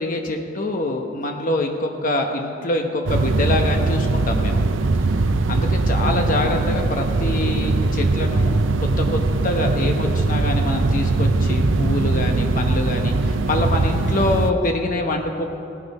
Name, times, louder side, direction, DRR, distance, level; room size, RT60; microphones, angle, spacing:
voice 1, 0.0-4.6 5.5-15.4, left 2 dB, 45° left, 2 dB, 1.0 m, -25 dB
sound 1, 3.1-14.5, right 3 dB, 90° right, 0.6 m, -20 dB
17.5 x 10.0 x 5.4 m, 2.8 s
head